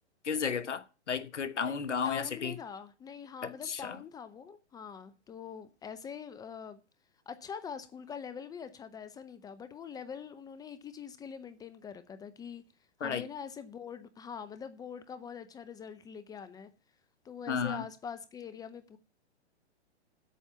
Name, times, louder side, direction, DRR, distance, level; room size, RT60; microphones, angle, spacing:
voice 1, 0.2-2.5 3.4-4.0 13.0-13.2 17.5-17.8, left 6 dB, 85° left, 1.2 m, -33 dB
voice 2, 2.0-6.8 7.3-12.6 13.0-16.7 17.2-19.0, left 7 dB, 10° left, 0.5 m, -44 dB
8.4 x 7.0 x 8.5 m
hypercardioid pair, 125°, 35 cm